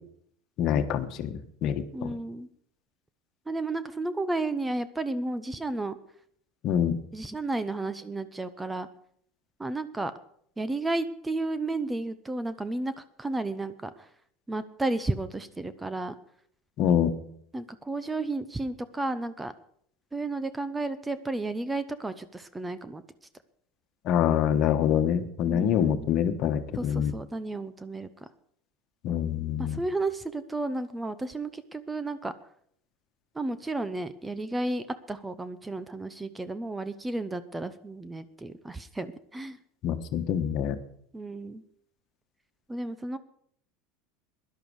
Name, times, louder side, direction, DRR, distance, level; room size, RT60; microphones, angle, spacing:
voice 1, 0.6-2.1 6.6-7.0 16.8-17.1 24.0-27.1 29.0-29.8 39.8-40.8, left 9 dB, 55° left, 8 dB, 1.3 m, -25 dB
voice 2, 1.9-2.5 3.5-6.0 7.1-8.9 9.6-10.1 10.6-14.1 14.5-16.1 17.5-19.5 20.1-23.0 25.5-26.1 26.7-28.3 29.6-32.3 33.3-39.6 41.1-41.6 42.7-43.2, right 2 dB, 10° right, 14 dB, 0.8 m, -32 dB
16.5 x 11.5 x 4.9 m, 0.66 s
hypercardioid pair, 95°, 0 cm